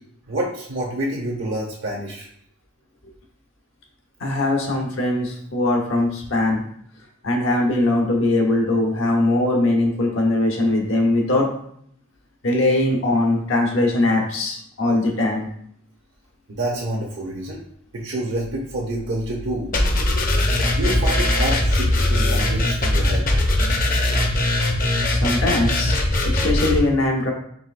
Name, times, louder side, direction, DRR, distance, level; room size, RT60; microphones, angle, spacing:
voice 1, 0.3-2.3 16.5-17.6 17.9-19.7 20.7-23.3, right 1 dB, 65° right, -1 dB, 0.6 m, -27 dB
voice 2, 4.2-6.6 7.2-11.5 12.4-15.5 25.1-26.0 26.3-27.3, left 2 dB, 80° left, 0 dB, 1.0 m, -21 dB
sound 1, 19.7-26.8, left 1 dB, 40° left, 0.6 m, -20 dB
4.7 x 3.3 x 2.5 m, 0.67 s
head